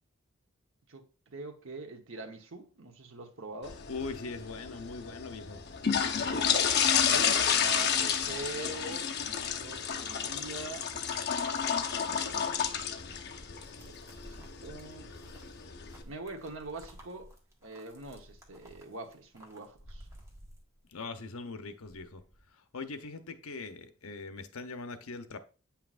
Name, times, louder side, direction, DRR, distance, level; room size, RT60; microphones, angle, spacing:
voice 1, 0.9-3.8 6.2-9.1 9.5-10.9 11.4-13.5 14.0-15.1 16.0-17.3 17.6-20.1, right 3 dB, 65° right, 1.1 m, -44 dB
sound 1, 3.6-16.0, left 7 dB, 50° left, 0.8 m, -31 dB
voice 2, 3.9-5.7 20.9-22.2 22.7-25.4, left 4 dB, 80° left, 0.8 m, -41 dB
sound 2, 11.6-21.2 21.5-22.5, equal, 15° right, 1.4 m, -54 dB
8.6 x 5.8 x 2.5 m
head